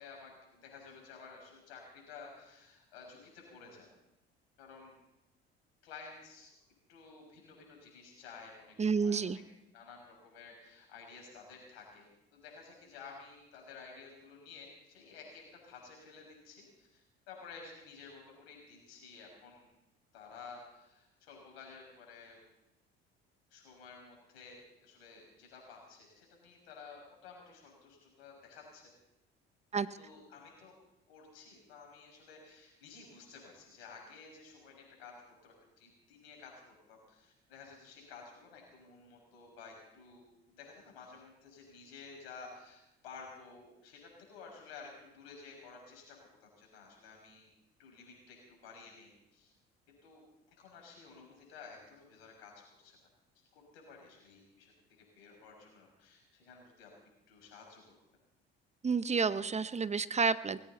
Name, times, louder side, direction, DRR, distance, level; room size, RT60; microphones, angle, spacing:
voice 1, 0.0-3.9 4.6-4.9 5.8-6.5 6.9-9.3 9.7-19.7 20.1-22.4 23.5-28.9 30.0-30.7 31.1-35.1 35.4-47.5 47.8-49.5 50.0-50.2 50.6-53.0 53.5-56.9 57.3-57.8, left 5 dB, 75° left, 0 dB, 6.6 m, -53 dB
voice 2, 8.8-9.4 29.7-29.9 58.8-60.6, right 5 dB, 20° right, 15 dB, 0.8 m, -30 dB
20.5 x 16.5 x 4.2 m, 0.90 s
hypercardioid pair, 60°, 31 cm